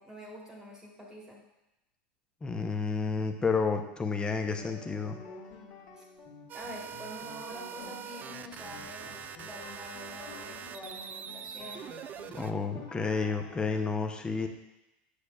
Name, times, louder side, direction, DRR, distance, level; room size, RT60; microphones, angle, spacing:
voice 1, 0.0-1.4 5.9-6.0 6.5-11.9, equal, 10° right, -3 dB, 1.3 m, -46 dB
voice 2, 2.4-5.2 12.3-14.5, left 4 dB, 15° left, 5 dB, 0.7 m, -30 dB
sound 1, 4.4-13.8, left 3 dB, 55° left, 1.5 m, -50 dB
sound 2, 6.5-12.5, right 8 dB, 30° right, 0.3 m, -43 dB
8.0 x 6.5 x 2.3 m, 0.94 s
hypercardioid pair, 110°, 5 cm